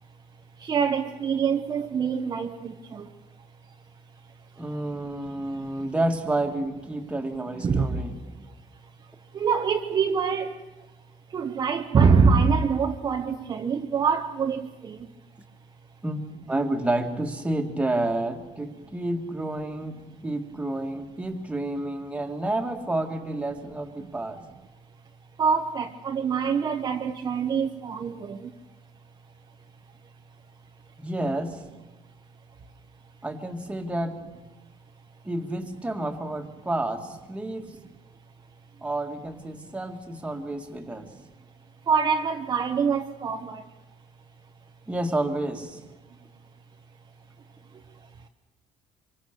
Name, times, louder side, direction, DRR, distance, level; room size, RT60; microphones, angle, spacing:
voice 1, 0.6-3.1 7.6-8.0 9.3-10.5 11.3-15.0 25.4-28.4 41.9-43.6, right 5 dB, 30° right, 1.0 m, -24 dB
voice 2, 4.6-8.2 16.0-16.2 16.5-24.4 31.0-31.6 33.2-34.2 35.2-37.7 38.8-41.1 44.9-45.8, right 1 dB, 10° right, 2.0 m, -30 dB
25.5 x 24.5 x 6.8 m
cardioid pair, 155°, 13 cm